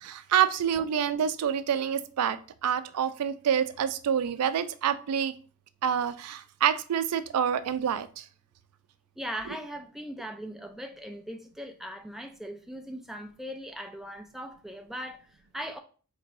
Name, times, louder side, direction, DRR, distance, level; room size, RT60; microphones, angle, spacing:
voice 1, 0.0-5.3 5.8-8.2, right 8 dB, 90° right, 0.4 m, -27 dB
voice 2, 9.2-15.8, equal, ahead, 0.3 m, -39 dB
4.3 x 2.6 x 3.0 m
head